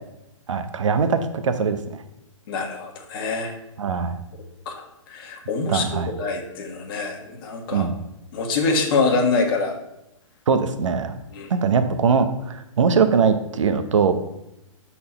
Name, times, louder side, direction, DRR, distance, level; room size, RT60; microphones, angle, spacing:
voice 1, 0.5-2.0 3.8-4.2 5.7-6.1 7.7-8.0 10.5-11.1 11.5-14.1, right 5 dB, 65° right, 9 dB, 0.8 m, -21 dB
voice 2, 2.5-3.5 4.6-7.9 8.3-9.8 11.3-11.5, left 4 dB, 45° left, 2 dB, 1.4 m, -25 dB
6.8 x 4.3 x 5.4 m, 0.88 s
figure-of-eight pair, 125°, 17 cm